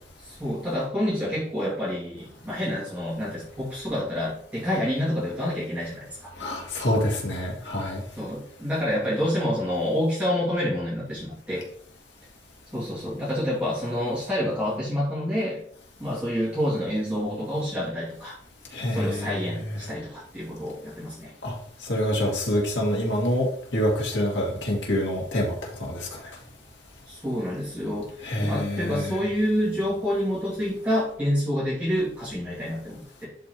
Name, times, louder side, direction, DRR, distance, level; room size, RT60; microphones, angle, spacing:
voice 1, 0.2-6.3 8.2-11.7 12.7-15.6 16.0-18.4 18.9-21.3 27.1-33.3, equal, 10° right, -10 dB, 2.3 m, -28 dB
voice 2, 6.4-8.0 18.7-19.9 21.4-21.5 21.8-26.2 28.2-29.2, equal, 75° left, -2 dB, 2.1 m, -27 dB
11.0 x 4.5 x 3.0 m, 0.63 s
head